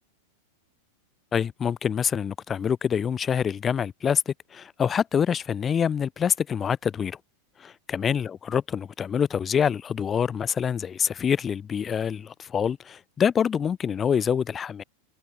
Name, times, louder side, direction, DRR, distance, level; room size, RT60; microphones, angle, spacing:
voice 1, 1.3-7.2 7.6-14.8, left 7 dB, 20° left, 3.2 m, -26 dB
figure-of-eight pair, 90°, 0 cm